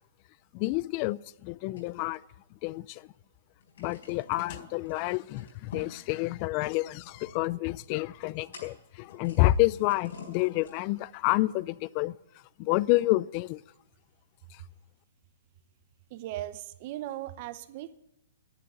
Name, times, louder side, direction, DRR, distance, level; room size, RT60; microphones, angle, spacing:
voice 1, 0.5-2.2 2.6-3.1 3.8-12.2 12.6-13.6, left 18 dB, 40° left, 0.4 m, -28 dB
sound 1, 1.8-2.9 3.2-3.3 3.6-11.1, left 5 dB, 80° left, 4.4 m, -49 dB
voice 2, 16.1-17.9, right 14 dB, 45° right, 0.8 m, -38 dB
11.0 x 9.5 x 7.9 m
hypercardioid pair, 140°, 0 cm